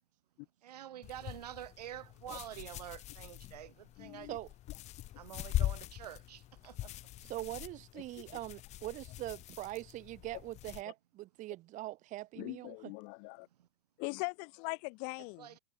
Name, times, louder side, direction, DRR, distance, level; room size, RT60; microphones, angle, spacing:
voice 1, 0.6-4.3 5.2-6.9 15.4-15.6, right 11 dB, 85° right, 5.4 m, -47 dB
sound 1, 1.0-10.8, left 14 dB, 35° left, 2.3 m, -42 dB
voice 2, 4.0-4.4 12.4-13.5 14.0-15.6, left 37 dB, 50° left, 3.9 m, -41 dB
voice 3, 7.2-12.9, right 17 dB, 40° right, 4.6 m, -42 dB
supercardioid pair, 130°, 20 cm